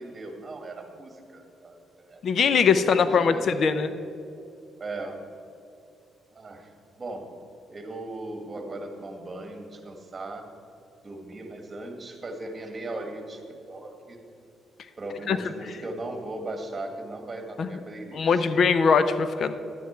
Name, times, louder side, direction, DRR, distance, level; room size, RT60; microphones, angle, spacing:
voice 1, 0.0-2.2 2.8-3.8 4.8-5.2 6.3-6.7 7.0-7.3 7.7-10.5 11.0-13.4 13.7-14.2 15.0-18.5, right 2 dB, 30° right, 4 dB, 1.6 m, -38 dB
voice 2, 2.2-3.9 15.3-15.4 17.6-17.7 18.1-19.5, left 5 dB, 60° left, 12 dB, 0.5 m, -21 dB
11.0 x 9.4 x 4.4 m, 2.7 s
cardioid pair, 90°, 0 cm